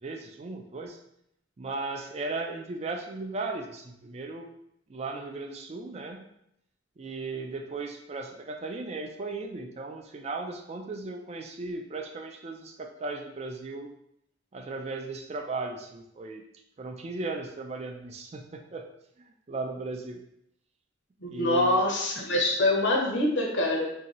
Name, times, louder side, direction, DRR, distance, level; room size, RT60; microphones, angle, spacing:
voice 1, 0.0-1.0 1.6-4.5 4.9-6.2 7.0-13.9 14.5-16.4 16.8-18.8 19.2-20.2 21.3-21.9, right 3 dB, 35° right, 4 dB, 0.4 m, -36 dB
voice 2, 21.2-23.9, left 1 dB, 70° left, 0 dB, 0.8 m, -25 dB
2.8 x 2.7 x 4.1 m, 0.78 s
head